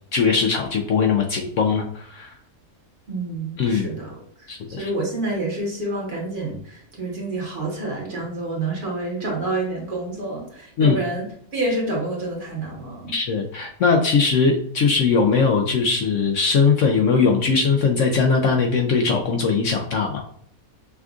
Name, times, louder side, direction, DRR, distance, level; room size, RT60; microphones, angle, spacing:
voice 1, 0.1-2.3 3.6-3.9 4.5-4.9 10.8-11.0 13.1-20.2, left 5 dB, 70° left, 3 dB, 0.7 m, -20 dB
voice 2, 3.1-13.1, right 2 dB, 35° right, -2 dB, 1.1 m, -28 dB
5.9 x 2.4 x 2.3 m, 0.65 s
omnidirectional pair, 1.7 m